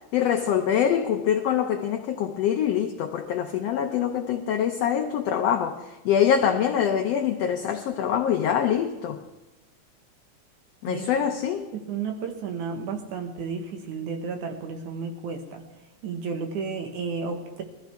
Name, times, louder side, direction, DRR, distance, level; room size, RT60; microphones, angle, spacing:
voice 1, 0.1-9.2 10.8-11.7, left 8 dB, 75° left, 4 dB, 1.6 m, -24 dB
voice 2, 11.7-15.6 16.0-17.6, right 5 dB, 85° right, 3 dB, 2.9 m, -32 dB
21.0 x 14.0 x 3.4 m, 1.1 s
omnidirectional pair, 3.4 m